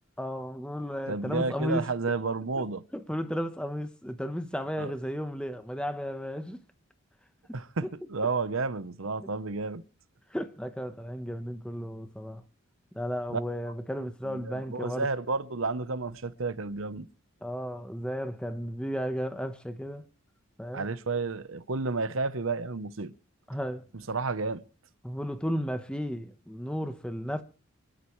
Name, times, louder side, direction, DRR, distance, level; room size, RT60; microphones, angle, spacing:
voice 1, 0.2-1.9 2.9-6.6 7.5-7.9 9.2-9.3 10.3-12.4 12.9-15.1 17.4-20.1 20.6-20.9 23.5-23.8 25.0-27.4, equal, 5° left, 1.0 m, -34 dB
voice 2, 1.1-2.8 4.8-4.9 7.5-9.8 13.3-13.4 14.0-17.1 20.7-23.1 24.1-24.6, right 3 dB, 75° right, 0.9 m, -31 dB
25.5 x 12.0 x 3.2 m
head